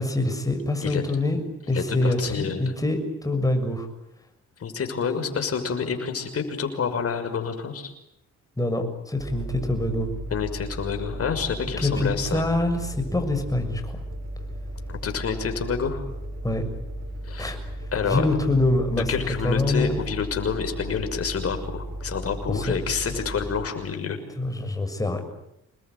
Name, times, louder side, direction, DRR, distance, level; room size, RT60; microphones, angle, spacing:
voice 1, 0.0-1.4 1.7-3.9 8.6-10.1 11.8-14.0 16.4-16.6 17.4-17.6 18.0-19.1 19.4-20.0 22.5-22.7 24.4-25.2, left 2 dB, 10° left, 5 dB, 6.7 m, -25 dB
voice 2, 1.7-2.6 4.6-7.9 10.3-12.4 14.9-16.0 17.2-17.5 17.9-18.3 18.9-24.2, left 6 dB, 50° left, 6 dB, 6.2 m, -28 dB
sound 1, 9.2-23.7, equal, 60° right, 7.1 m, -35 dB
28.0 x 21.0 x 9.6 m, 0.83 s
cardioid pair, 90°, 30 cm